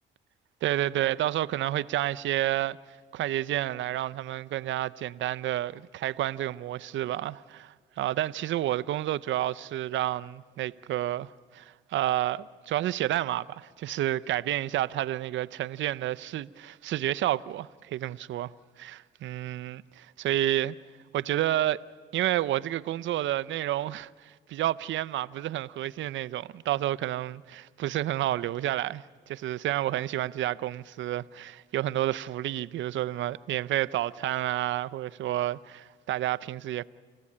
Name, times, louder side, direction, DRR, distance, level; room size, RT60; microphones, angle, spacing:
voice 1, 0.6-2.8 3.1-20.7 21.1-21.8 22.1-36.8, right 13 dB, 70° right, 0.6 m, -30 dB
29.5 x 15.0 x 8.6 m
cardioid pair, 90°, 20 cm